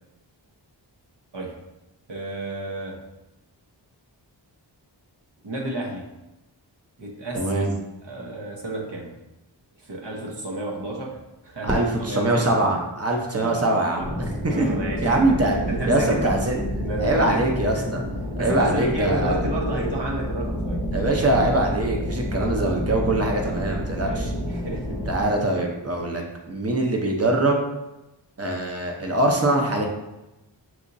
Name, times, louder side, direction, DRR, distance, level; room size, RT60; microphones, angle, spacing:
voice 1, 2.1-3.0 5.4-6.1 7.0-7.6 8.0-9.2 9.8-12.6 13.4-14.1 14.5-15.4 15.7-16.3 16.8-17.5 17.9-18.1 18.4-20.8 24.0-25.1, right 2 dB, 65° right, -1 dB, 1.0 m, -31 dB
voice 2, 7.3-7.7 11.6-14.8 15.0-15.6 15.9-16.6 17.0-18.0 18.4-19.4 20.9-24.3 25.1-27.6 28.4-29.9, right 2 dB, 35° right, 1 dB, 0.8 m, -23 dB
Fireworks, 11.6-13.9, equal, 10° right, 1.0 m, -34 dB
sound 1, 14.0-25.3, equal, 15° left, 0.9 m, -29 dB
6.0 x 2.8 x 2.7 m, 0.97 s
wide cardioid pair, 80°, 45 cm